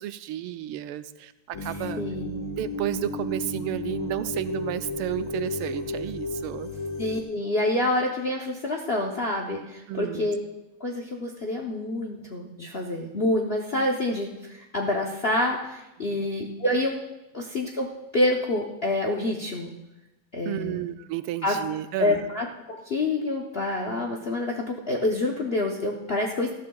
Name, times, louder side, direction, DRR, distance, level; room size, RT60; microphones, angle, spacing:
voice 1, 0.0-2.0 2.6-6.7 9.9-10.3 16.0-16.3 20.4-22.2, right 13 dB, 80° right, 11 dB, 1.5 m, -32 dB
sound 1, 1.5-7.2, left 2 dB, 25° left, 1.1 m, -33 dB
voice 2, 2.0-2.4 7.0-10.4 10.8-17.0 17.3-17.9 18.1-19.7 20.3-20.8 21.4-21.6 22.0-26.5, left 1 dB, 85° left, 0 dB, 0.5 m, -27 dB
18.5 x 13.5 x 2.3 m, 0.98 s
omnidirectional pair, 2.4 m